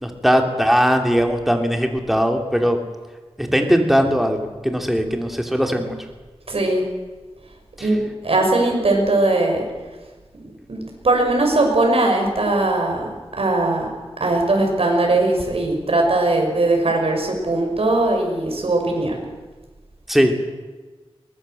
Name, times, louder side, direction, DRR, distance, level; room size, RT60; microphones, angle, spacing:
voice 1, 0.0-2.8 3.4-6.0 7.8-7.9 20.1-20.4, equal, ahead, 4 dB, 2.9 m, -19 dB
voice 2, 6.5-6.9 7.8-9.6 10.7-13.1 13.4-13.9 14.2-19.2, right 2 dB, 70° right, 1 dB, 6.2 m, -19 dB
23.0 x 19.5 x 7.9 m, 1.3 s
wide cardioid pair, 90°, 10 cm